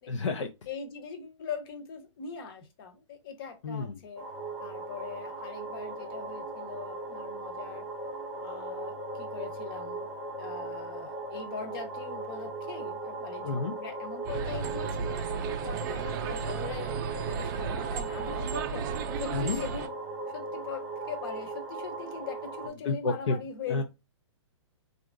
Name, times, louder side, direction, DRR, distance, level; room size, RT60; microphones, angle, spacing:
voice 1, 0.1-0.5 3.6-4.0 13.4-13.7 19.3-19.6 22.8-23.4 23.7-23.8, left 3 dB, 70° left, 0.6 m, -30 dB
voice 2, 0.7-4.3 4.6-7.9 8.4-10.1 10.4-15.2 15.6-16.9 17.2-18.9 19.2-19.9 20.3-23.8, left 6 dB, 45° left, 0.9 m, -41 dB
sound 1, 4.2-22.7, right 3 dB, ahead, 0.7 m, -38 dB
sound 2, 14.2-19.9, right 6 dB, 40° right, 0.4 m, -34 dB
3.5 x 2.5 x 2.4 m
hypercardioid pair, 130°, 16 cm